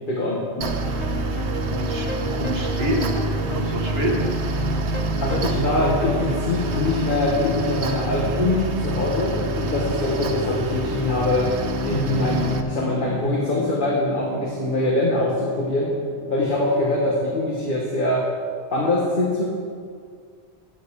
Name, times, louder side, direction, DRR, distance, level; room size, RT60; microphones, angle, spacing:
voice 1, 0.1-0.5 5.2-11.5 11.8-15.9 16.3-18.2 18.7-19.4, left 2 dB, 50° left, -4 dB, 1.5 m, -23 dB
sound 1, 0.6-17.5, left 1 dB, 30° left, 1.1 m, -30 dB
Mechanical fan, 0.6-12.6, right 3 dB, 90° right, 1.1 m, -28 dB
voice 2, 1.8-3.2 3.5-4.3, right 1 dB, 65° right, -1 dB, 1.9 m, -27 dB
14.0 x 9.4 x 3.6 m, 2.1 s
omnidirectional pair, 1.1 m